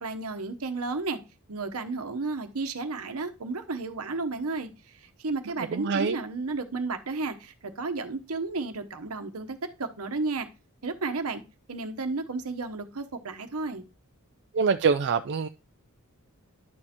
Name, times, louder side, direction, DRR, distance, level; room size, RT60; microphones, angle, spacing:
voice 1, 0.0-1.2 1.5-10.5 10.8-11.4 11.7-13.8, right 3 dB, 75° right, 1.0 m, -33 dB
voice 2, 5.7-6.2 14.5-15.5, right 5 dB, 55° right, 0.4 m, -24 dB
11.0 x 6.5 x 2.9 m
head